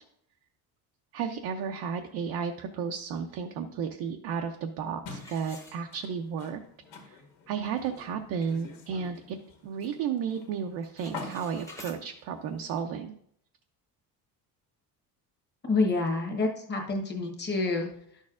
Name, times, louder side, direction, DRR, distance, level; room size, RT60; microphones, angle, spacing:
voice 1, 1.1-6.6 7.0-7.2 7.5-9.4 9.6-13.1, right 7 dB, 60° right, 4 dB, 0.6 m, -33 dB
sound 1, 5.0-12.8, left 3 dB, 85° left, 1.8 m, -47 dB
sound 2, 5.1-6.4 6.8-6.9 7.5-7.6 8.0-8.3 8.7-9.8 10.1-10.5 10.7-12.0, left 1 dB, 10° left, 0.9 m, -50 dB
voice 2, 15.6-18.2, left 3 dB, 25° left, 2 dB, 1.2 m, -28 dB
11.5 x 6.4 x 2.5 m, 0.69 s
cardioid pair, 165°, 39 cm